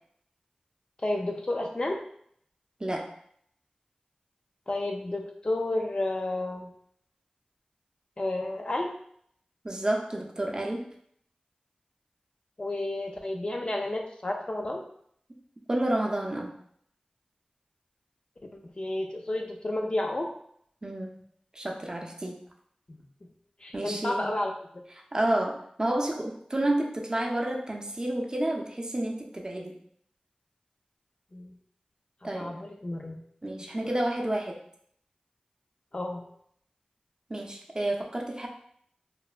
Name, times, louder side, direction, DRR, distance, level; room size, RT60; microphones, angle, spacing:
voice 1, 1.0-2.0 4.7-6.7 8.2-8.9 12.6-14.8 18.8-20.3 22.9-23.0 23.6-24.5 31.3-31.5 32.2-33.2 35.9-36.2, left 1 dB, 45° left, 2 dB, 0.4 m, -31 dB
voice 2, 9.6-10.8 15.7-16.5 20.8-21.1 21.5-22.4 23.7-24.3 25.1-29.7 32.2-32.5 33.4-34.6 37.3-38.5, right 1 dB, 30° right, 1 dB, 0.4 m, -30 dB
3.0 x 2.0 x 2.4 m, 0.66 s
wide cardioid pair, 55°, 2 cm